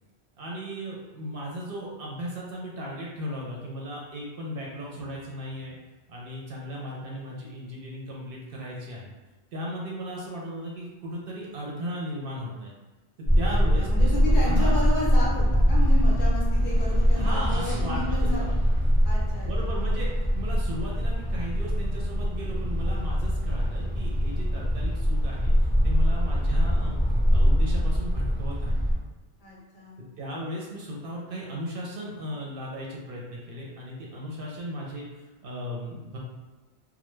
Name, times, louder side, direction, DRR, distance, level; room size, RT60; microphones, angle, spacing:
voice 1, 0.4-5.8 6.1-9.1 9.5-12.7 13.4-14.8 17.1-18.5 19.4-25.5 25.8-27.0 27.3-28.8 30.2-35.1 35.4-36.2, equal, 65° right, -3 dB, 0.7 m, -36 dB
sound 1, 13.2-29.0, equal, 10° right, 0.5 m, -23 dB
voice 2, 13.4-18.6 19.0-19.8 29.4-30.0, left 1 dB, 55° left, -5 dB, 0.7 m, -33 dB
2.1 x 2.0 x 3.0 m, 1.2 s
omnidirectional pair, 1.1 m